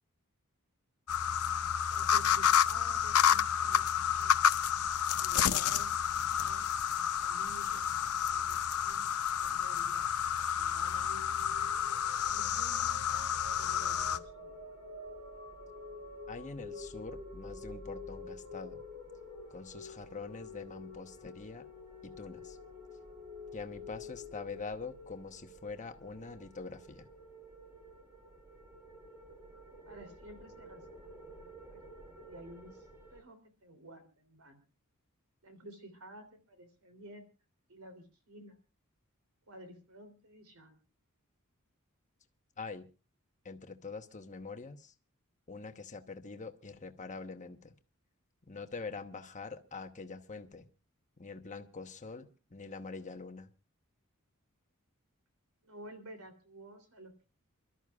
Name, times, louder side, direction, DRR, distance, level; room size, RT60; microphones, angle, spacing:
sound 1, 1.1-14.2, left 8 dB, 75° left, 0.7 m, -30 dB
voice 1, 1.9-4.6 5.2-5.9 6.4-6.7 7.2-7.9 8.3-10.1 10.4-11.3 12.3-14.6 29.8-34.6 35.4-37.3 37.7-38.6 39.5-40.8 55.6-57.3, right 1 dB, 70° right, 8 dB, 3.2 m, -52 dB
sound 2, 10.7-25.1, equal, 45° right, 5.3 m, -52 dB
sound 3, 13.3-33.2, left 3 dB, 10° right, 2.9 m, -51 dB
voice 2, 16.3-18.8 19.5-21.7 22.0-22.6 23.5-27.1 42.6-42.8 43.4-44.9 45.5-47.7 48.5-50.7 51.2-53.5, left 4 dB, 35° left, 7 dB, 1.1 m, -44 dB
28.5 x 13.0 x 2.4 m, 0.31 s
head